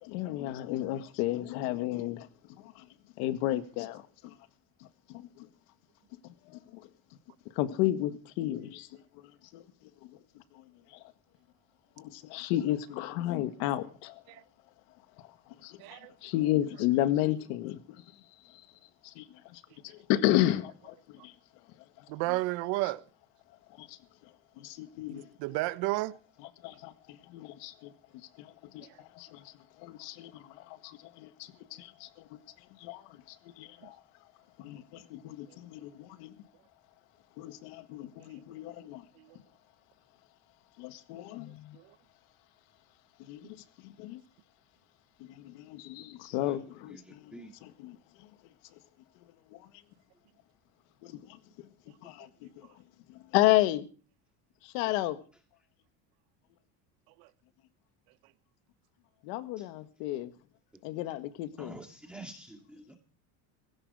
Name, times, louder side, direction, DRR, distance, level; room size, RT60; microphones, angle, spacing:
voice 1, 0.0-2.3 2.6-2.8 3.2-4.3 5.1-5.5 6.2-6.9 7.5-8.9 9.5-9.6 10.5-10.6 10.9-11.0 12.0-14.2 15.2-18.0 18.5-18.6 19.0-21.3 22.0-22.1 23.8-24.0 24.6-25.3 26.6-27.9 28.4-32.1 32.8-34.0 34.6-36.3 37.4-39.0 40.8-41.8 43.2-44.2 45.3-47.3 47.8-47.9 49.5-49.7 51.0-51.7 52.0-52.3 52.6-52.7 53.1-53.9 54.6-55.2 59.2-60.3 60.8-61.7, left 14 dB, 80° left, 1.8 m, -33 dB
voice 2, 15.8-16.1 22.1-23.0 25.1-26.2 28.9-29.0 35.5-35.6 38.8-38.9 39.2-39.4 41.7-41.8 57.2-57.3, right 20 dB, 75° right, 1.2 m, -33 dB
voice 3, 46.2-46.6 46.9-47.5 59.6-59.7 61.6-63.0, right 1 dB, 5° right, 2.2 m, -48 dB
16.5 x 16.0 x 4.9 m
cardioid pair, 135°, 38 cm